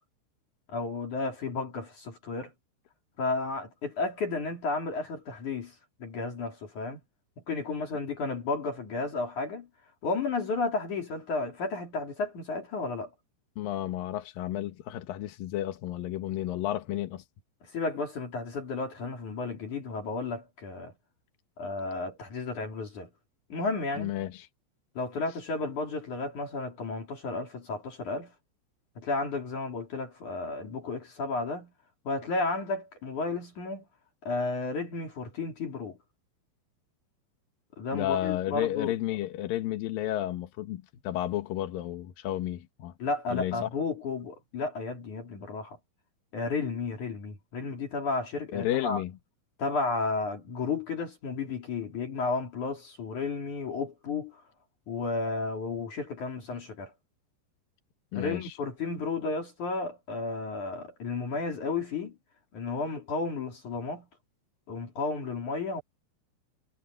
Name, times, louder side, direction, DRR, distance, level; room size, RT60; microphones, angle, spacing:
voice 1, 0.7-2.5 3.2-5.7 6.0-7.0 7.5-9.7 10.0-13.1 17.6-20.9 21.6-23.1 23.5-24.1 25.0-28.3 29.0-31.7 32.1-33.8 34.2-36.0 37.8-38.9 43.0-45.8 46.3-49.0 49.6-54.4 54.9-56.9 58.1-62.2 62.5-64.1 64.7-65.8, left 3 dB, 40° left, 3.9 m, -33 dB
voice 2, 13.6-17.2 24.0-24.5 37.9-42.9 43.3-43.7 48.5-49.1 56.5-56.6 58.1-58.5, left 13 dB, 90° left, 2.0 m, -32 dB
omnidirectional pair, 6.0 m